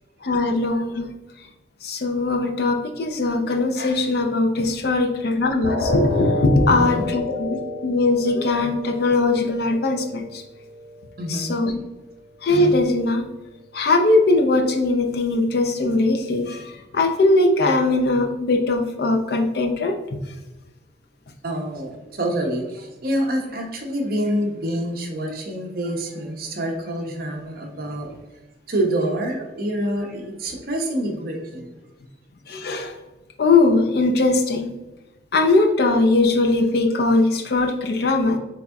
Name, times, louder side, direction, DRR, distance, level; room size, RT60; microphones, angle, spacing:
voice 1, 0.2-1.1 1.8-10.4 11.3-11.8 12.4-13.3 13.7-16.6 16.9-19.9 32.5-32.9 33.4-34.7 35.3-38.4, left 2 dB, 55° left, 4 dB, 0.4 m, -20 dB
sound 1, 5.6-11.6 12.0-12.2 12.7-12.8, left 2 dB, 70° right, 1.3 m, -30 dB
voice 2, 6.7-7.1 11.2-11.5 21.4-28.1 28.7-31.7, right 1 dB, 55° right, 1 dB, 0.7 m, -26 dB
4.0 x 3.5 x 2.3 m, 1.1 s
head